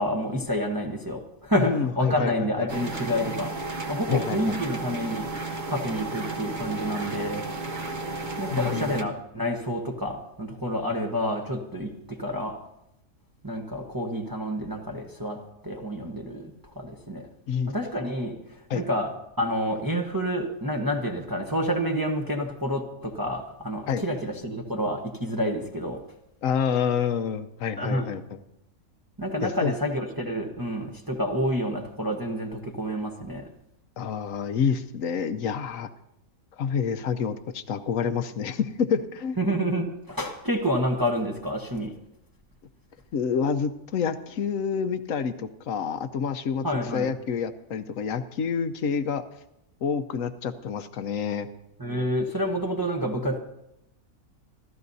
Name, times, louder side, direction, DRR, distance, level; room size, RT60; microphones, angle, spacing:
voice 1, 0.0-3.6 3.9-5.3 5.7-7.4 8.4-12.6 13.4-17.3 17.7-19.1 19.4-26.0 27.8-28.1 29.2-33.5 39.4-41.9 46.6-47.1 51.8-53.4, equal, 15° right, 1 dB, 1.0 m, -29 dB
voice 2, 1.5-2.7 4.1-4.6 8.5-9.0 17.5-17.7 18.7-18.8 23.9-24.0 26.4-28.4 29.4-29.7 34.0-35.9 36.6-39.4 43.1-49.2 49.8-51.5, left 6 dB, 65° left, 10 dB, 1.1 m, -28 dB
sound 1, 2.7-9.0, right 2 dB, 40° right, 0.8 m, -33 dB
27.0 x 14.0 x 2.7 m, 0.84 s
omnidirectional pair, 1.6 m